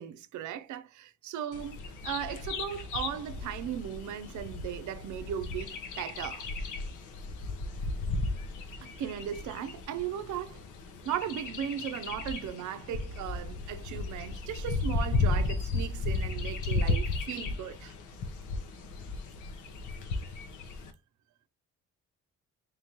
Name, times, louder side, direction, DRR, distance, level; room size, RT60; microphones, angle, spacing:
voice 1, 0.0-6.4 9.0-10.6 11.0-17.9, right 10 dB, 75° right, 0.6 m, -37 dB
Bird vocalization bird call bird song, 1.5-20.9, left 3 dB, 80° left, 0.9 m, -35 dB
3.7 x 3.5 x 2.8 m
cardioid pair, 90°, 30 cm